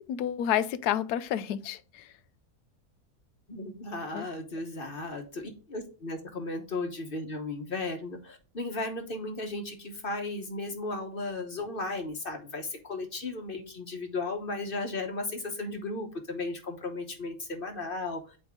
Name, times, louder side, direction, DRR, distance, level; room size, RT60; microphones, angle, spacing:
voice 1, 0.1-2.1 4.1-4.2, left 10 dB, 80° left, 1.1 m, -29 dB
voice 2, 3.5-18.4, left 2 dB, 40° left, 1.1 m, -35 dB
8.8 x 3.3 x 3.6 m
omnidirectional pair, 1.7 m